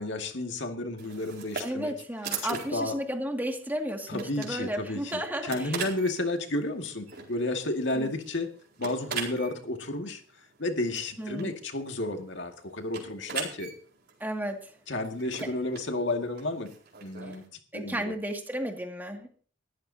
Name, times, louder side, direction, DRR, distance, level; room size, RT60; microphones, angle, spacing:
voice 1, 0.0-1.9 2.4-3.0 4.1-8.5 8.8-10.2 10.6-13.7 14.9-16.7 17.0-17.5 17.7-18.1, left 2 dB, 60° left, 4 dB, 2.2 m, -32 dB
sound 1, 1.0-17.5, right 6 dB, 50° right, 4.4 m, -42 dB
voice 2, 1.6-5.8 8.0-8.1 11.2-11.5 14.2-14.6 17.7-19.3, equal, 10° right, 3 dB, 2.3 m, -33 dB
20.5 x 14.0 x 2.8 m, 0.42 s
head